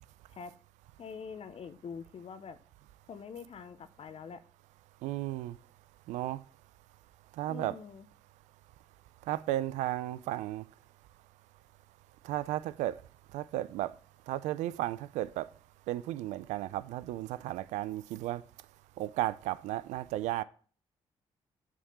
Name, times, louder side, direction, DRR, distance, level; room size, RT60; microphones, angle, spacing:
voice 1, 1.0-2.6 3.1-4.4 7.5-8.1, left 6 dB, 55° left, 0.7 m, -44 dB
voice 2, 5.0-5.5 6.1-6.4 7.4-7.8 9.3-10.6 12.2-13.0 13.3-13.9 14.3-15.5 15.9-18.4 19.0-20.4, right 14 dB, 85° right, 0.4 m, -34 dB
8.4 x 3.7 x 6.8 m
supercardioid pair, 55°, 12 cm